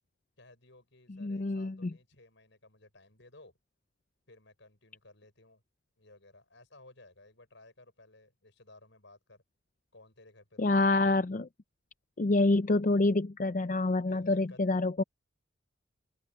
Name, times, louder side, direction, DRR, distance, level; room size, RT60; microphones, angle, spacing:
voice 1, 0.4-3.5 4.3-5.6 6.0-9.4 9.9-10.7 11.0-11.1 14.1-14.6, left 2 dB, 65° left, 6.5 m, -57 dB
voice 2, 1.2-1.9 10.6-11.5 12.2-15.0, left 2 dB, 40° left, 0.5 m, -27 dB
head